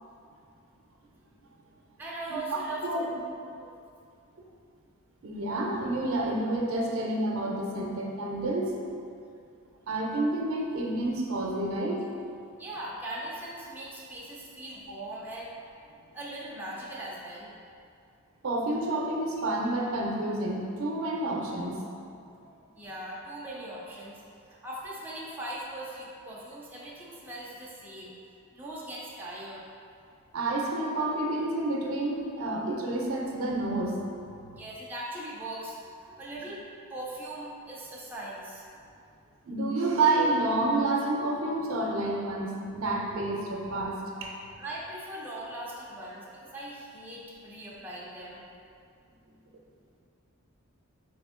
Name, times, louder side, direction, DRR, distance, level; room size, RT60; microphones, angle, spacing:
voice 1, 2.0-3.1 12.6-15.5 16.1-17.5 22.7-24.2 24.5-28.1 28.5-29.6 34.5-36.6 36.9-38.7 44.6-48.4, right 1 dB, 10° right, -6 dB, 0.4 m, -40 dB
voice 2, 5.2-8.8 9.9-12.1 18.4-21.9 30.3-34.0 39.5-44.3, right 2 dB, 65° right, -1 dB, 0.5 m, -29 dB
3.5 x 2.8 x 3.6 m, 2.4 s
head